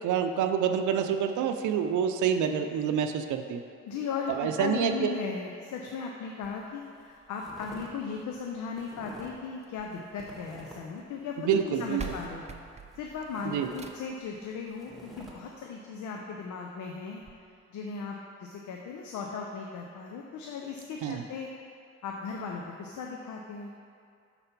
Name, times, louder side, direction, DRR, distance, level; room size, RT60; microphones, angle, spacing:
voice 1, 0.0-3.6 4.4-5.1 11.4-12.0 13.5-13.7 21.0-21.2, right 8 dB, 75° right, 7 dB, 0.6 m, -27 dB
voice 2, 3.9-12.5 13.0-21.5 22.0-23.8, left 5 dB, 75° left, 1 dB, 0.7 m, -37 dB
sound 1, 6.4-6.7 7.0-7.9 8.2-9.5 9.8-11.0 11.4-13.0 13.3-15.3, right 1 dB, ahead, 1.4 m, -49 dB
sound 2, 9.6-10.8 11.6-11.7 12.0-14.3 15.6-15.7 16.2-16.3 16.5-16.6 17.2-17.3, right 6 dB, 20° right, 0.5 m, -44 dB
6.7 x 4.2 x 5.9 m, 2.3 s
cardioid pair, 90°, 30 cm